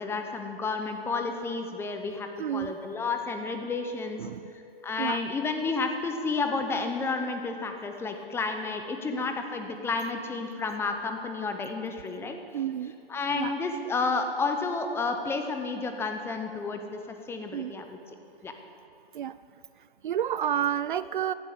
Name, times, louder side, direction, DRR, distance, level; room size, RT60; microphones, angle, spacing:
voice 1, 0.0-4.2 4.8-12.4 13.1-17.9 18.4-18.5, left 4 dB, 10° left, 6 dB, 0.8 m, -31 dB
voice 2, 2.4-2.7 4.2-4.5 5.0-5.2 9.1-9.3 12.5-12.9 13.3-13.5 17.5-17.7 19.1-19.4 20.0-21.3, right 10 dB, 55° right, 16 dB, 0.5 m, -30 dB
14.5 x 12.0 x 8.4 m, 2.6 s
hypercardioid pair, 135°, 31 cm